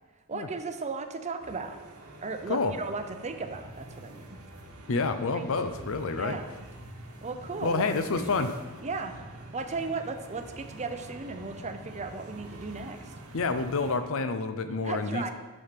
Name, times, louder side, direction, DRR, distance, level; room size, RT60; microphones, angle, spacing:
voice 1, 0.3-1.8 2.2-4.4 5.3-5.4 6.2-6.7 7.2-7.9 8.2-8.5 8.8-9.1 9.5-13.1 14.8-15.3, right 4 dB, 30° right, 7 dB, 0.6 m, -36 dB
sound 1, 1.4-14.0, right 1 dB, 85° right, 1.2 m, -46 dB
voice 2, 4.9-6.4 7.6-8.5 13.3-15.3, left 3 dB, 65° left, 9 dB, 0.6 m, -28 dB
6.4 x 6.2 x 5.8 m, 1.2 s
head